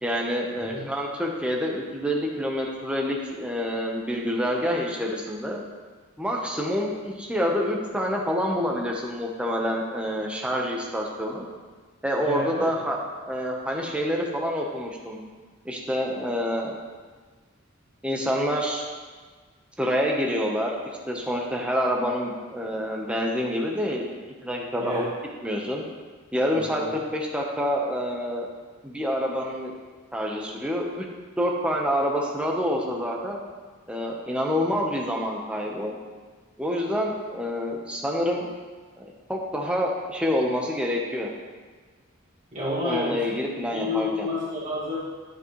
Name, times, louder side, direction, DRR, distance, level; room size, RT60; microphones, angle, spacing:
voice 1, 0.0-5.6 6.2-11.5 12.0-13.0 13.3-15.2 15.6-16.8 18.0-18.8 19.8-20.7 21.1-24.1 24.4-25.1 25.4-25.8 26.3-28.5 28.8-29.7 30.1-31.1 31.4-33.4 33.9-35.9 36.6-38.5 39.0-41.3 42.8-44.3, equal, 5° right, -1 dB, 1.0 m, -27 dB
voice 2, 0.6-0.9 12.2-12.7 24.8-25.1 26.5-27.0 42.5-43.2 43.7-45.0, left 2 dB, 30° right, -7 dB, 2.2 m, -30 dB
10.5 x 8.6 x 3.2 m, 1.4 s
head